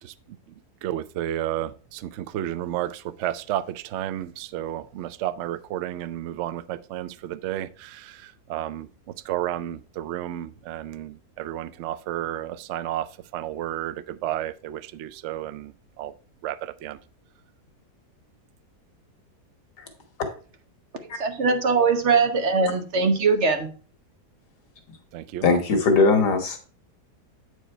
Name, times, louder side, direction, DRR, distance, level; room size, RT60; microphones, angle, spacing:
voice 1, 0.8-8.9 9.2-16.1 16.4-17.0 25.1-25.5, right 12 dB, 75° right, 0.6 m, -32 dB
voice 2, 21.2-23.7, right 4 dB, 50° right, 1.1 m, -21 dB
voice 3, 25.4-26.6, left 4 dB, 85° left, 1.8 m, -20 dB
8.2 x 4.7 x 4.3 m
omnidirectional pair, 1.7 m